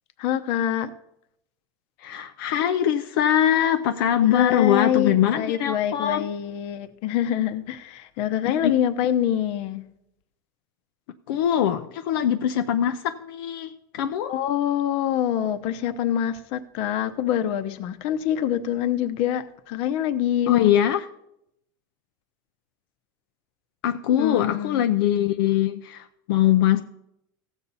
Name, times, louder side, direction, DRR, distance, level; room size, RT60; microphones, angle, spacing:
voice 1, 0.2-0.9 4.2-9.8 14.3-20.7 24.2-24.8, left 10 dB, 55° left, 11 dB, 0.8 m, -25 dB
voice 2, 2.0-6.2 8.5-8.7 11.3-14.3 20.5-21.0 23.8-26.8, left 10 dB, 80° left, 7 dB, 0.6 m, -22 dB
16.0 x 7.2 x 4.1 m, 0.79 s
supercardioid pair, 135°, 12 cm